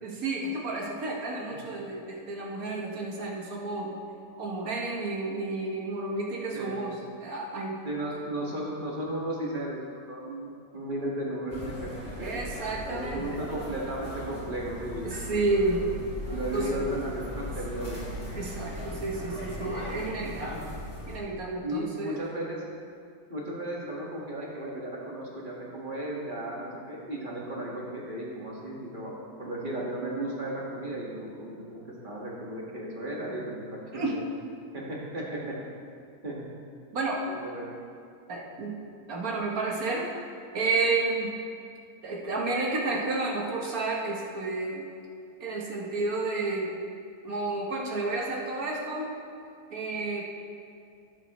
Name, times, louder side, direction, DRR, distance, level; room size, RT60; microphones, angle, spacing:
voice 1, 0.0-4.0 4.4-7.8 12.2-13.5 15.0-15.8 16.5-16.9 18.3-20.7 21.1-22.2 33.9-34.2 36.9-37.3 38.3-38.8 39.1-40.1 40.5-41.3 42.0-44.9 45.4-46.8 47.2-49.1 49.7-50.2, right 3 dB, 70° right, -1 dB, 1.6 m, -31 dB
voice 2, 6.5-6.9 7.8-12.4 12.9-15.8 16.3-18.1 21.6-22.6 23.3-34.2 34.7-35.6 36.2-36.4 37.4-37.7, right 1 dB, 35° right, -4 dB, 1.8 m, -35 dB
sound 1, 11.5-21.2, equal, 20° left, 2.9 m, -38 dB
16.0 x 7.4 x 3.0 m, 2.4 s
omnidirectional pair, 1.6 m